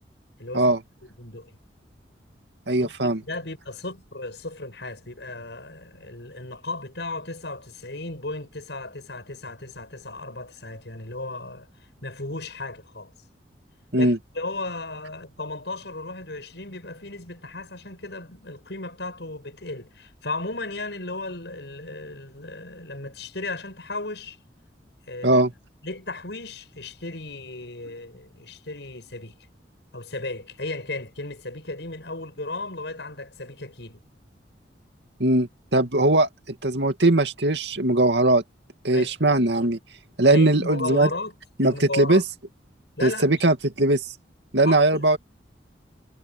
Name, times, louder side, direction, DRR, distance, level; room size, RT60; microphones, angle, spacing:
voice 1, 0.4-0.7 1.2-1.5 2.8-11.7 12.0-13.1 13.9-24.4 25.1-25.4 25.8-29.3 29.9-34.0 38.9-39.1 40.3-41.3 41.6-42.2 43.0-43.5 44.6-45.0, left 2 dB, 75° left, 6.3 m, -35 dB
voice 2, 2.7-3.2 13.9-14.2 25.2-25.5 35.2-36.3 36.6-38.4 38.8-39.8 40.2-41.1 41.6-42.2 43.0-44.0 44.5-45.2, right 2 dB, 70° right, 2.5 m, -20 dB
head